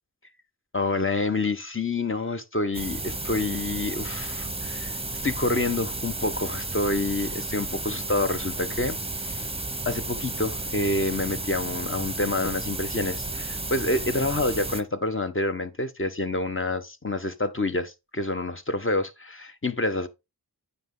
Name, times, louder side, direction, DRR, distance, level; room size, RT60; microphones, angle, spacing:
voice 1, 0.7-4.9 5.2-9.5 9.8-20.1, left 2 dB, 30° left, 1.2 m, -28 dB
sound 1, 2.7-14.8, right 2 dB, 15° right, 0.9 m, -33 dB
9.1 x 5.5 x 3.9 m
wide cardioid pair, 45°, 40 cm